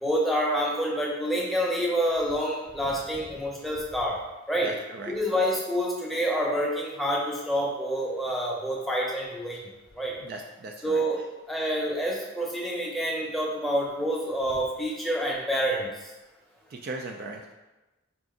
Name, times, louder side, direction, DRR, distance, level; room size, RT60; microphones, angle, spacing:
voice 1, 0.0-4.2 4.5-4.7 5.0-9.7 10.0-10.1 10.8-11.2 11.5-15.9, equal, ahead, -4 dB, 0.7 m, -27 dB
voice 2, 4.6-5.1 10.2-11.0 16.7-17.5, right 2 dB, 45° right, 2 dB, 0.3 m, -38 dB
5.8 x 2.4 x 3.7 m, 1.1 s
head